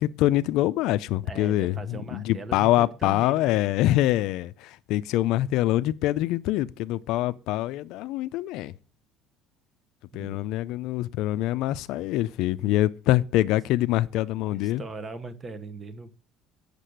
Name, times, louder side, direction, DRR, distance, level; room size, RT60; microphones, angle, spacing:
voice 1, 0.0-8.7 10.1-14.8, left 15 dB, 65° left, 0.4 m, -25 dB
voice 2, 1.2-3.7 10.2-10.5 12.6-12.9 14.5-16.1, right 3 dB, 20° right, 0.9 m, -40 dB
8.3 x 6.6 x 7.7 m
cardioid pair, 155°, 0 cm